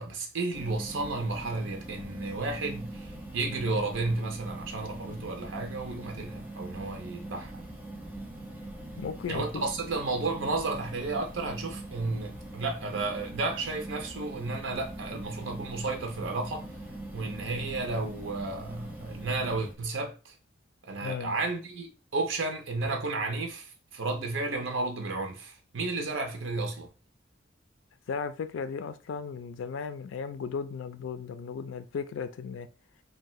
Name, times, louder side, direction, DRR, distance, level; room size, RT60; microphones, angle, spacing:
voice 1, 0.0-7.6 9.3-16.7 17.1-20.3 20.9-26.9, right 3 dB, 80° right, 0.6 m, -32 dB
sound 1, 0.5-19.8, right 1 dB, 10° right, 0.5 m, -42 dB
voice 2, 9.0-9.6 21.0-21.4 28.1-32.7, left 6 dB, 85° left, 0.4 m, -35 dB
2.7 x 2.1 x 3.0 m
head